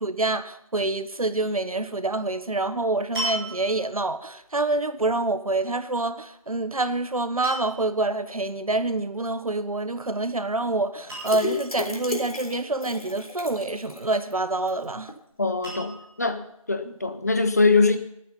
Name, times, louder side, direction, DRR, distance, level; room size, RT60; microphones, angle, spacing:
voice 1, 0.0-15.1, right 2 dB, 75° right, 11 dB, 1.4 m, -27 dB
sound 1, 2.2-2.4 3.1-4.0 6.4-6.8 7.4-8.0 9.9-10.3 10.6-10.7 11.1-11.8 14.1-14.7 15.6-16.3 17.0-17.1, right 1 dB, 5° right, 6.8 m, -35 dB
sound 2, 11.2-14.3 14.7-14.8 15.1-15.2, left 2 dB, 80° left, 3.6 m, -33 dB
voice 2, 15.4-16.4 16.7-18.0, left 3 dB, 30° left, 10 dB, 0.9 m, -22 dB
17.0 x 9.3 x 5.6 m, 0.79 s
figure-of-eight pair, 175°, 18 cm